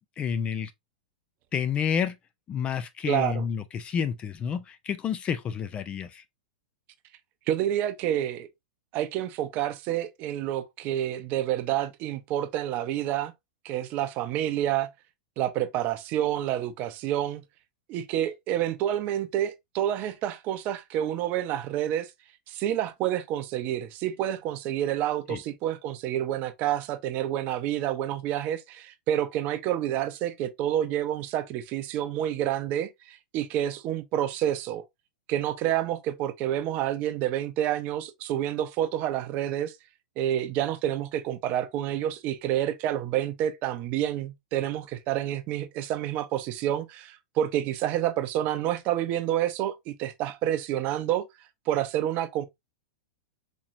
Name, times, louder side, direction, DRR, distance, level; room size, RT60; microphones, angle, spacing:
voice 1, 0.2-0.7 1.5-2.2 2.5-6.2 25.3-25.4, left 7 dB, 25° left, 0.4 m, -29 dB
voice 2, 3.1-3.4 7.5-8.5 8.9-13.3 13.6-14.9 15.4-17.4 17.9-22.1 22.5-34.8 35.3-39.7 40.2-51.3 51.7-52.5, right 12 dB, 40° right, 0.6 m, -28 dB
4.3 x 2.9 x 2.5 m
hypercardioid pair, 125°, 4 cm